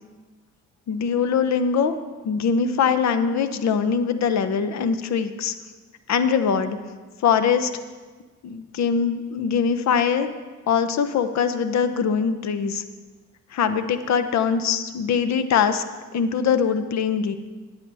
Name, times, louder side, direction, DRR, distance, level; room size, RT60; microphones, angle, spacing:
voice 1, 0.9-2.0 2.2-5.5 6.1-6.8 7.2-7.7 8.4-10.3 10.7-12.8 13.5-15.8 16.1-17.3, left 6 dB, 65° left, 10 dB, 0.8 m, -22 dB
15.0 x 8.1 x 3.4 m, 1.3 s
cardioid pair, 90°, 30 cm